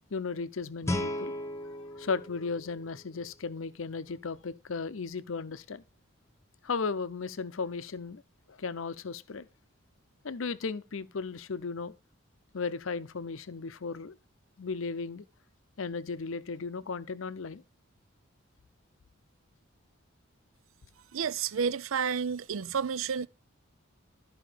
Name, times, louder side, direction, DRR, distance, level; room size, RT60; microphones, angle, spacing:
voice 1, 0.1-1.3 2.0-5.8 6.6-8.2 8.5-9.5 10.2-11.9 12.5-14.2 14.6-15.2 15.8-17.6, left 4 dB, 75° left, 0.6 m, -35 dB
Guitar, 0.8-3.6, left 1 dB, 15° left, 1.1 m, -36 dB
voice 2, 21.1-23.3, right 6 dB, 80° right, 0.5 m, -30 dB
13.0 x 5.0 x 5.0 m
head